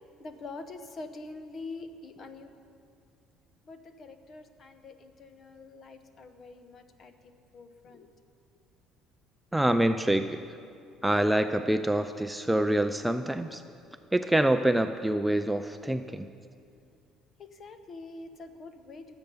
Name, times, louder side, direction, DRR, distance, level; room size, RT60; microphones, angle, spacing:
voice 1, 0.2-2.5 3.6-8.1 17.4-19.1, left 3 dB, 40° left, 8 dB, 1.1 m, -45 dB
voice 2, 9.5-10.4 11.0-13.6 14.1-16.3, right 1 dB, 5° right, 8 dB, 0.4 m, -26 dB
22.5 x 8.0 x 5.6 m, 2.4 s
cardioid pair, 115°, 0 cm